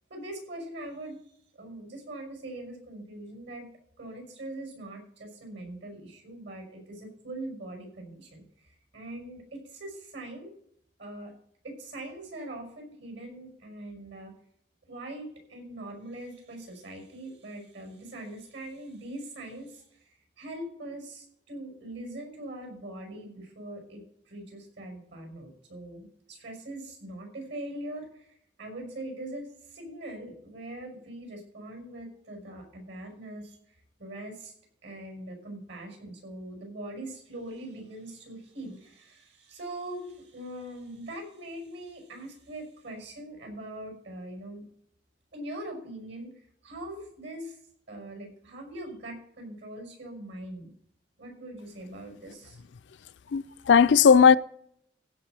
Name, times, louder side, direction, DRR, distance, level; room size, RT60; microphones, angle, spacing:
voice 1, 0.1-1.2 1.5-3.7 4.0-10.5 11.0-11.3 11.6-14.3 14.9-20.0 20.4-33.6 34.0-34.5 34.8-44.6 45.3-46.3 46.6-47.6 47.9-50.7 51.2-52.6, right 1 dB, 80° right, 5.6 m, -42 dB
voice 2, 53.3-54.4, left 6 dB, 75° left, 0.4 m, -17 dB
16.0 x 5.4 x 6.1 m
head